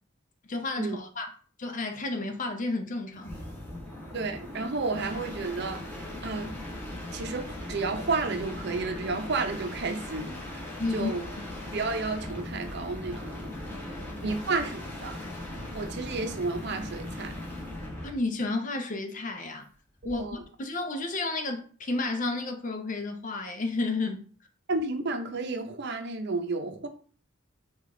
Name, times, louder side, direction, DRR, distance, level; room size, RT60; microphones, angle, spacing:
voice 1, 0.5-1.3 1.6-3.3 10.8-11.1 13.7-14.4 15.6-15.7 18.0-19.7 20.0-24.2, left 2 dB, 40° left, 0.6 m, -32 dB
sound 1, 3.1-18.2 20.0-20.4, left 1 dB, 10° left, 1.2 m, -39 dB
voice 2, 4.1-6.5 7.1-10.7 10.9-11.2 11.7-13.5 14.2-15.2 15.7-17.3 20.1-20.4 24.7-26.9, right 3 dB, 60° right, 0.6 m, -32 dB
4.9 x 2.4 x 3.7 m
head